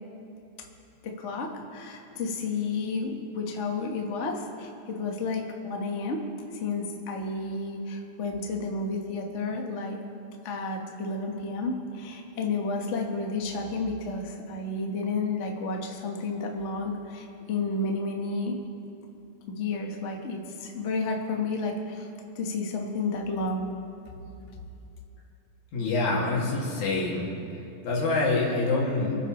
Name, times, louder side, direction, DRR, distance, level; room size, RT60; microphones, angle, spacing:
voice 1, 1.0-6.2 6.5-10.0 10.4-18.6 19.5-22.1 22.3-23.7 24.1-24.2 24.5-24.6, left 3 dB, 65° left, 1 dB, 0.7 m, -31 dB
voice 2, 25.7-27.3 27.8-29.2, left 3 dB, 80° left, -4 dB, 3.6 m, -26 dB
28.5 x 9.8 x 3.1 m, 2.8 s
omnidirectional pair, 3.4 m